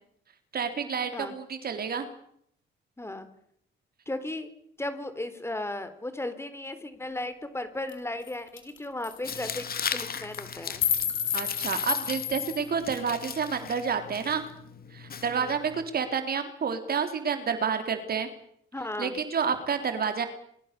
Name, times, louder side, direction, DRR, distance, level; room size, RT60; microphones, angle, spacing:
voice 1, 0.5-2.1 11.3-14.4 14.9-18.3 19.0-20.3, right 6 dB, 50° right, 8 dB, 3.7 m, -29 dB
voice 2, 3.0-3.3 4.1-4.5 4.8-9.7 9.9-10.8 15.3-15.5 18.7-19.1, left 1 dB, 15° left, 11 dB, 3.8 m, -35 dB
sound 1, 7.9-8.0 8.3-8.4 8.6-8.8 9.0-9.2 9.8-10.0 10.3-12.7, left 9 dB, 75° left, 5.7 m, -30 dB
Tearing, 9.2-15.9, left 7 dB, 50° left, 2.5 m, -38 dB
28.0 x 23.5 x 6.9 m, 0.70 s
cardioid pair, 90°, 20 cm